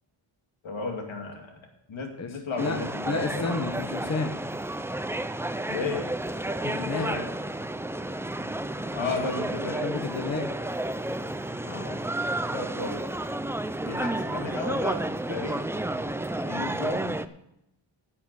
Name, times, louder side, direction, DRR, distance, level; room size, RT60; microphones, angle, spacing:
voice 1, 0.6-1.6 1.9-3.5 5.7-6.1 6.8-7.2 8.9-9.8 11.6-12.0 12.5-13.1 13.8-15.0 15.3-15.6 16.5-17.1, left 3 dB, 75° left, 2 dB, 2.4 m, -34 dB
voice 2, 2.2-2.8 3.1-4.3 6.6-7.2 9.8-10.5 13.8-14.0, left 4 dB, 35° left, 6 dB, 0.9 m, -31 dB
sound 1, 2.6-17.3, right 1 dB, 5° right, 0.3 m, -31 dB
10.0 x 8.6 x 6.8 m, 0.82 s
wide cardioid pair, 140°, 47 cm